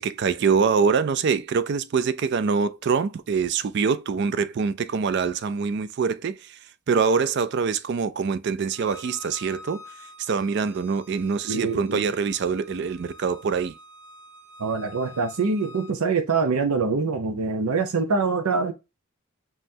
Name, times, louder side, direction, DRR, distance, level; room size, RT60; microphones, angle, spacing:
voice 1, 0.0-6.6 6.9-9.8 10.2-13.7, right 5 dB, 50° right, 0.3 m, -24 dB
Bowed string instrument, 8.7-15.9, left 1 dB, 15° left, 0.7 m, -47 dB
voice 2, 11.5-12.1 14.6-18.7, right 4 dB, 85° right, 0.6 m, -24 dB
5.5 x 3.0 x 2.6 m
head